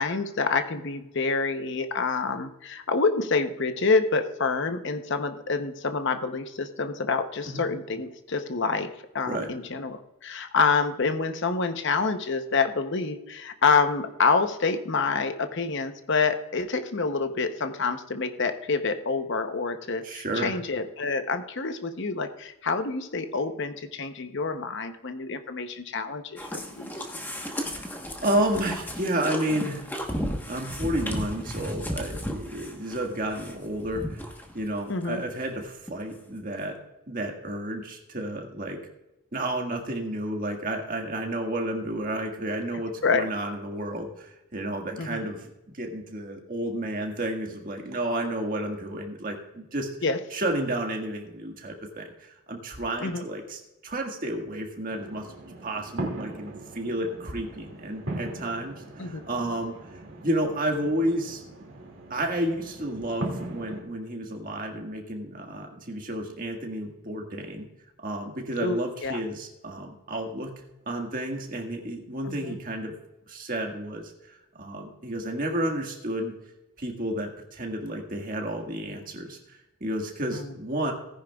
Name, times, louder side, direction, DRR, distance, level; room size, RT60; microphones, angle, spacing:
voice 1, 0.0-26.9 34.9-35.2 43.0-43.3 45.0-45.3 50.0-50.2 53.0-53.2 59.0-59.2 68.6-69.2 72.2-72.6 80.3-80.5, left 4 dB, 55° left, 8 dB, 0.8 m, -27 dB
voice 2, 20.0-20.5 27.5-29.9 30.5-34.2 34.5-36.8 37.1-38.8 39.3-49.9 50.3-55.3 55.6-59.8 60.2-61.4 62.1-67.7 68.0-72.9 73.3-76.3 76.8-80.9, right 1 dB, 40° right, 2 dB, 1.7 m, -31 dB
sound 1, 26.4-34.7 35.0-35.1 35.6-35.7 35.9-36.0, equal, 10° left, 1.1 m, -34 dB
sound 2, 54.9-63.8, right 2 dB, 60° right, 2.4 m, -39 dB
17.5 x 10.0 x 2.3 m, 0.96 s
head